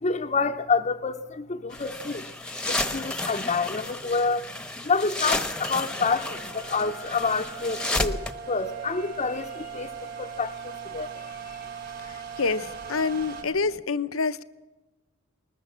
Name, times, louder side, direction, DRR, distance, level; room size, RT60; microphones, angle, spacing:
voice 1, 0.0-4.5 4.8-8.2 8.5-11.7, left 4 dB, 35° left, 2 dB, 0.7 m, -28 dB
sound 1, 1.7-8.3, left 2 dB, 5° left, 1.0 m, -32 dB
sound 2, 6.0-13.4, right 7 dB, 55° right, 5.7 m, -39 dB
voice 2, 12.0-14.4, left 4 dB, 75° left, 13 dB, 0.8 m, -27 dB
20.0 x 20.0 x 7.4 m, 1.1 s
head